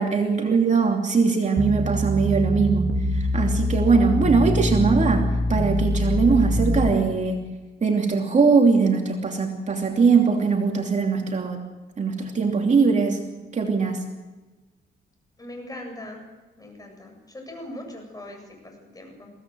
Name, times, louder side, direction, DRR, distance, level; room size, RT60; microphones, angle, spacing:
voice 1, 0.0-7.4 7.8-11.6 12.0-13.2 13.5-14.0, right 5 dB, 35° right, 2 dB, 2.9 m, -21 dB
sound 1, 1.6-6.9, left 1 dB, 5° right, 1.9 m, -24 dB
voice 2, 15.4-16.2 16.6-19.3, left 1 dB, 20° left, 2 dB, 7.8 m, -40 dB
22.5 x 17.0 x 7.9 m, 1.2 s
cardioid pair, 90°, 20 cm